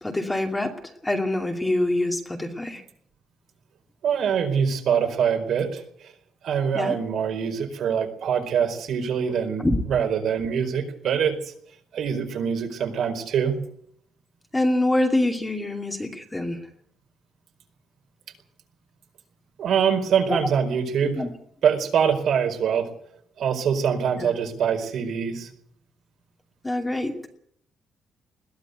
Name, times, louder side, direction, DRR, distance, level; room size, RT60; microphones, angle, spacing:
voice 1, 0.0-0.7 1.0-2.8 6.7-7.0 9.6-9.8 14.5-16.6 20.3-20.4 21.1-21.3 24.2-24.3 26.6-27.2, left 1 dB, 10° left, 2 dB, 2.6 m, -25 dB
voice 2, 4.0-5.8 6.4-11.4 11.9-13.6 19.6-21.2 21.6-22.9 23.4-25.5, right 7 dB, 60° right, 4 dB, 4.7 m, -24 dB
21.5 x 16.0 x 8.1 m, 0.69 s
cardioid pair, 155°, 0 cm